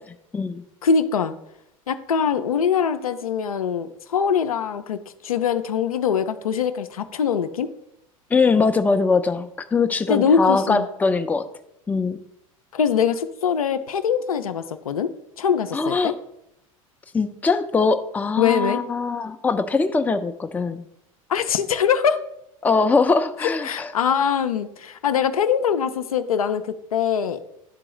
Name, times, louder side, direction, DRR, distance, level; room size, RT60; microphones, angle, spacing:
voice 1, 0.8-1.3 1.9-7.7 10.1-10.8 12.7-15.1 15.4-16.1 18.4-18.8 21.3-22.2 23.4-27.4, left 7 dB, 80° left, 9 dB, 0.5 m, -22 dB
voice 2, 8.3-11.4 11.9-12.2 15.7-16.1 17.1-20.8 22.6-23.9, left 4 dB, 10° left, 8 dB, 0.4 m, -21 dB
11.0 x 3.8 x 3.0 m, 0.79 s
figure-of-eight pair, 80°, 18 cm